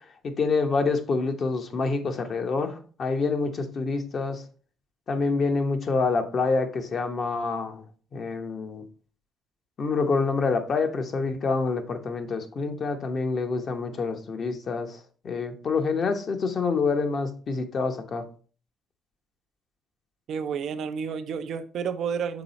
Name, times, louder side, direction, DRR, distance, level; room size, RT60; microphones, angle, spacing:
voice 1, 0.2-4.4 5.1-7.8 8.1-8.8 9.8-15.0 15.2-18.3, left 4 dB, 50° left, 0.9 m, -27 dB
voice 2, 20.3-22.4, right 6 dB, 65° right, 0.5 m, -30 dB
6.0 x 3.9 x 4.0 m
supercardioid pair, 75°, 0 cm